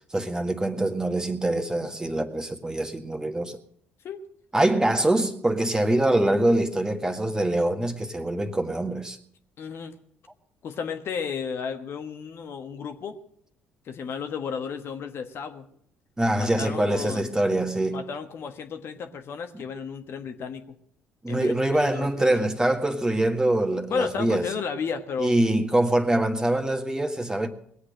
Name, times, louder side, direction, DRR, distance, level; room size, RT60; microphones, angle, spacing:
voice 1, 0.1-3.6 4.5-9.2 16.2-18.0 19.5-19.6 21.2-24.5 25.2-27.5, right 1 dB, 15° right, 1.7 m, -24 dB
voice 2, 9.6-9.9 10.6-13.2 13.9-15.7 16.4-17.3 17.9-20.6 21.3-21.5 21.9-22.3 23.9-25.4, left 6 dB, 55° left, 1.4 m, -33 dB
20.5 x 8.3 x 6.4 m
hypercardioid pair, 50°, 5 cm